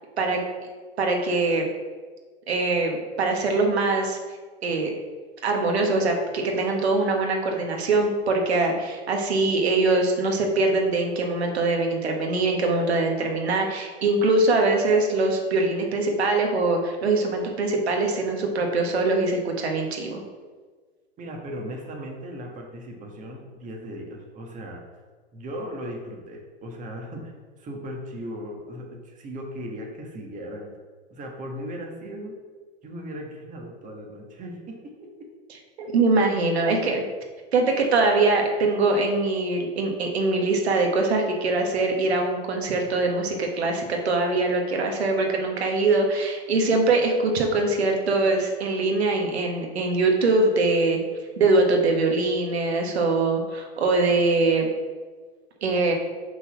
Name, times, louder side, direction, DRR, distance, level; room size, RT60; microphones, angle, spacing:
voice 1, 1.0-1.7 2.5-4.2 4.6-4.9 5.4-20.2 35.9-37.0 37.5-51.0 51.4-54.7 55.6-55.9, right 3 dB, 90° right, 2 dB, 1.3 m, -23 dB
voice 2, 21.2-24.8 25.3-30.7 31.1-32.4 32.8-35.3 35.8-35.9, equal, 25° right, 1 dB, 1.3 m, -37 dB
5.6 x 4.0 x 5.9 m, 1.4 s
hypercardioid pair, 115°, 31 cm